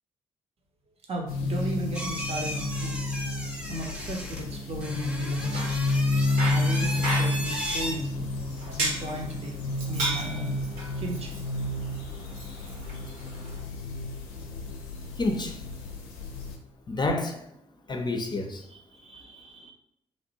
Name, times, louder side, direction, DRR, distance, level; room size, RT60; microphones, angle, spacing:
voice 1, 1.1-3.0 3.7-5.7 6.5-8.3 8.6-9.6 9.9-10.6 11.0-11.4 18.7-19.7, equal, 45° right, 0.8 m, -36 dB
sound 1, 1.3-16.6, left 2 dB, 75° left, 0.5 m, -31 dB
sound 2, 1.9-7.9, equal, 5° right, 0.9 m, -36 dB
Bicycle, 5.2-13.6, right 2 dB, 65° right, 1.1 m, -36 dB
voice 2, 15.2-15.6 16.9-17.4 17.9-18.6, left 2 dB, 30° left, 0.6 m, -28 dB
3.1 x 2.5 x 2.9 m
hypercardioid pair, 40°, 15 cm